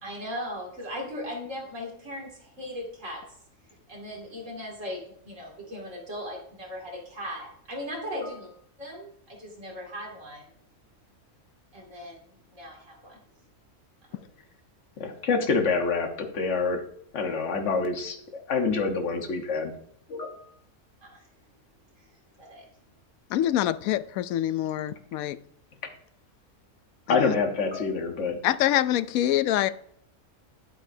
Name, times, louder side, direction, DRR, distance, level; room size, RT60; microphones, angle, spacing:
voice 1, 0.0-3.2 3.9-8.5 8.8-10.5 11.7-13.2 14.1-14.2 21.0-21.3 22.0-22.1 22.4-22.7, equal, 55° right, 2.9 m, -38 dB
voice 2, 15.0-16.8 17.1-19.7 20.1-20.4 27.1-28.4, left 4 dB, 55° left, 1.5 m, -27 dB
voice 3, 23.3-25.4 27.1-27.3 28.4-29.7, left 12 dB, 75° left, 1.0 m, -25 dB
11.0 x 9.0 x 2.7 m
omnidirectional pair, 1.6 m